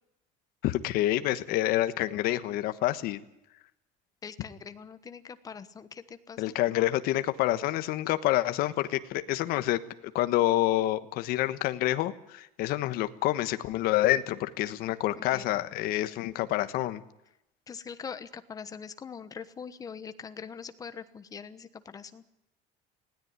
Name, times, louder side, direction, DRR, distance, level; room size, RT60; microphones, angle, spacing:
voice 1, 0.6-3.2 6.4-9.8 10.1-17.0, left 15 dB, 60° left, 11 dB, 1.3 m, -27 dB
voice 2, 4.2-6.6 15.2-15.4 17.7-22.2, left 6 dB, 20° left, 12 dB, 1.1 m, -43 dB
20.0 x 17.0 x 9.5 m, 0.86 s
cardioid pair, 175°, 18 cm